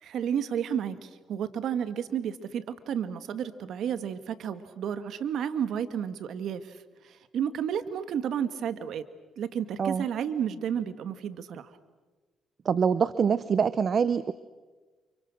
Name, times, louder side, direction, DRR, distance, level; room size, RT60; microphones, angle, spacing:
voice 1, 0.0-9.1 9.4-11.7, right 8 dB, 70° right, 12 dB, 1.7 m, -32 dB
voice 2, 12.6-14.3, right 6 dB, 50° right, 15 dB, 0.8 m, -25 dB
29.5 x 28.5 x 6.4 m, 1.3 s
cardioid pair, 90°, 0 cm